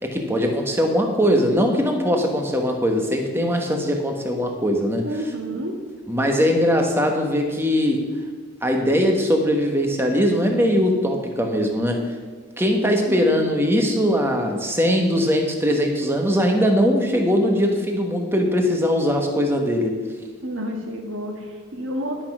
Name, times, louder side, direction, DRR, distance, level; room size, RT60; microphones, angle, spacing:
voice 1, 0.0-5.1 6.1-8.1 8.6-12.1 12.6-20.0, equal, 10° right, 2 dB, 1.1 m, -21 dB
voice 2, 5.0-5.7 13.1-13.3 20.4-22.2, equal, 65° right, 2 dB, 1.8 m, -30 dB
11.5 x 6.0 x 6.1 m, 1.4 s
head